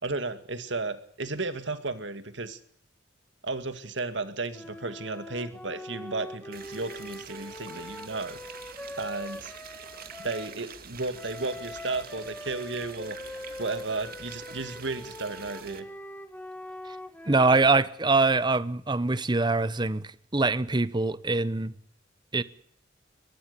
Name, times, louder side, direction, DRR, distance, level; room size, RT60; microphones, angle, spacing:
voice 1, 0.0-2.6 3.4-8.4 9.0-9.5 10.2-13.2 13.6-15.9, right 3 dB, 70° right, 2.2 m, -34 dB
sound 1, 4.5-10.6 11.1-17.8, left 1 dB, 10° left, 1.5 m, -42 dB
sound 2, 6.5-15.8, right 6 dB, 50° right, 2.4 m, -46 dB
voice 2, 17.3-21.7 22.3-22.4, right 3 dB, 25° right, 0.9 m, -24 dB
23.0 x 19.5 x 6.9 m
head